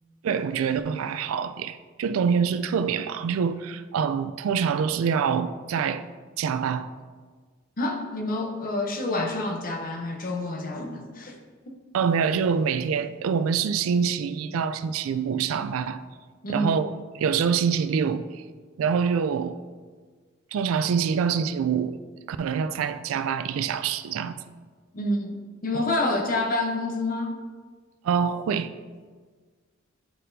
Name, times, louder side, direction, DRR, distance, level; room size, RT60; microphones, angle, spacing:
voice 1, 0.2-6.1 6.4-6.9 11.9-16.0 16.5-16.9 17.2-18.3 18.8-19.6 20.5-22.0 22.3-24.4 28.0-28.7, right 6 dB, 80° right, 0.3 m, -25 dB
voice 2, 7.8-11.4 16.4-16.8 24.9-27.4, left 2 dB, 45° left, 0.8 m, -28 dB
9.1 x 4.2 x 2.6 m
head